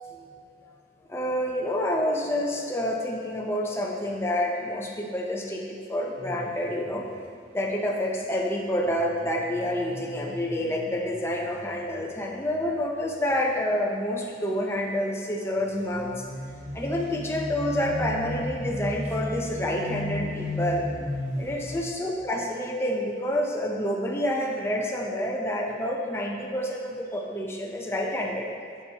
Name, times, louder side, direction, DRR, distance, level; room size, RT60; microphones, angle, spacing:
voice 1, 1.1-7.1 7.5-16.2 16.7-20.9 21.4-28.5, left 1 dB, 15° left, -1 dB, 0.6 m, -28 dB
sound 1, 6.2-7.1 8.7-13.2 13.6-14.0 15.5-21.8, left 1 dB, 35° right, 1.4 m, -36 dB
8.4 x 6.9 x 2.9 m, 2.3 s
head